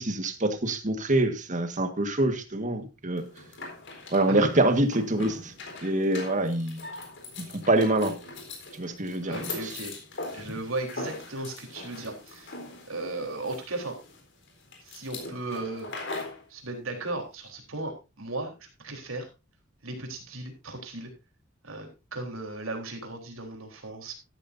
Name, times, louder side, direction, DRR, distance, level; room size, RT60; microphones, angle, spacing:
voice 1, 0.0-3.2 4.1-5.5 5.8-6.8 7.5-8.1 8.8-9.3, right 2 dB, 40° right, 8 dB, 1.6 m, -25 dB
sound 1, 3.2-16.4, left 2 dB, 60° left, 4.1 m, -41 dB
voice 2, 9.2-9.9 10.3-12.5 12.9-14.0 14.8-15.9 16.5-19.3 19.8-21.1 21.6-24.1, right 2 dB, 75° right, 3 dB, 3.8 m, -36 dB
13.0 x 13.0 x 2.7 m, 0.27 s
head